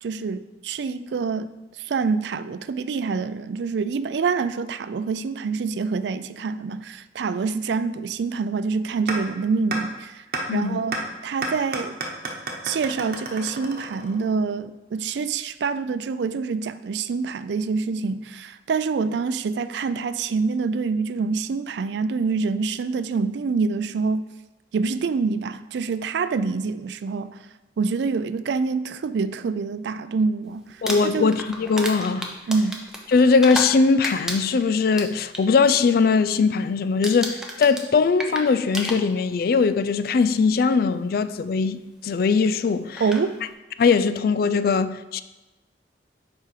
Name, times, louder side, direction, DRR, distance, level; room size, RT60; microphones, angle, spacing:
voice 1, 0.0-10.2 10.5-11.0 11.2-12.0 12.6-24.2 24.7-27.4 27.8-31.4 32.5-32.8 43.0-43.4, right 4 dB, 70° right, 0.4 m, -26 dB
sound 1, 9.1-9.2 9.7-9.8 10.3-10.4 10.9-11.0 11.4-14.3, right 3 dB, 55° right, 1.0 m, -30 dB
voice 2, 10.5-10.8 30.8-32.3 33.1-43.0 43.8-45.2, left 5 dB, 55° left, 0.3 m, -20 dB
Crumpling crinkling, 30.7-33.8 34.0-35.4 35.8-36.1 36.4-36.7 37.0-39.4 40.4-40.5 42.5-42.6 43.0-43.3, right 1 dB, 5° right, 0.7 m, -32 dB
7.4 x 4.9 x 4.9 m
head